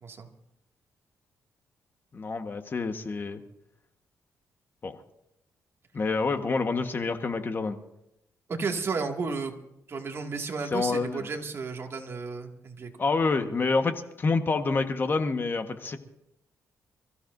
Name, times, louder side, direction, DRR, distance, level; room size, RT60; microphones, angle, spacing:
voice 1, 2.1-3.4 4.8-4.9 5.9-7.8 10.7-11.3 13.0-16.0, left 4 dB, 40° left, 6 dB, 1.4 m, -27 dB
voice 2, 8.5-9.5 9.9-12.9, right 4 dB, 45° right, 2 dB, 2.2 m, -33 dB
27.5 x 15.0 x 2.7 m, 0.84 s
cardioid pair, 100°, 6 cm